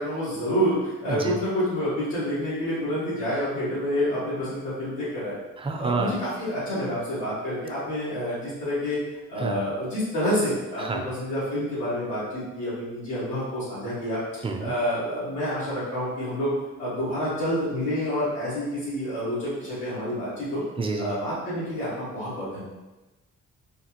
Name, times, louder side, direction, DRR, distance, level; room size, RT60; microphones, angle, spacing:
voice 1, 0.0-5.4 5.8-9.0 9.3-14.2 14.6-16.5 16.8-20.6 21.0-22.6, equal, 90° left, -12 dB, 1.3 m, -28 dB
voice 2, 5.6-6.1 9.4-9.6 10.8-11.0 14.4-14.7 20.8-21.1, right 3 dB, 20° right, 3 dB, 0.4 m, -28 dB
3.3 x 2.3 x 2.8 m, 1.1 s
cardioid pair, 90°, 30 cm